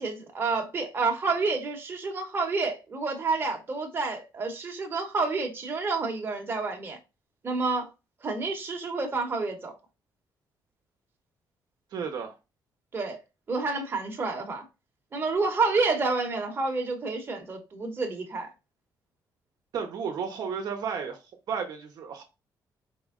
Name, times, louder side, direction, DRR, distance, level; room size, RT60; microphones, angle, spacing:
voice 1, 0.0-7.0 7.4-7.9 8.2-9.8 12.9-13.2 13.5-14.6 15.1-18.5, right 3 dB, 30° right, 1.0 m, -29 dB
voice 2, 11.9-12.3 19.7-21.2 21.5-22.2, right 6 dB, 60° right, 0.8 m, -33 dB
4.4 x 3.1 x 3.7 m
cardioid pair, 155°, 8 cm